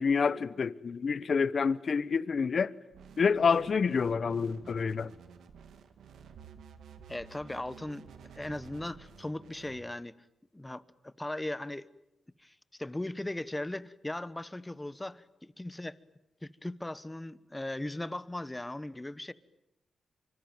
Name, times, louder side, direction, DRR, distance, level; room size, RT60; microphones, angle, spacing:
voice 1, 0.0-2.7 3.2-5.1, left 5 dB, 55° left, 1.0 m, -28 dB
sound 1, 2.9-9.8, right 6 dB, 90° right, 2.2 m, -52 dB
voice 2, 7.1-8.0 8.3-10.1 10.5-11.8 12.4-15.9 16.4-19.3, left 1 dB, 15° left, 1.1 m, -38 dB
25.5 x 25.0 x 9.1 m
cardioid pair, 80°, 0 cm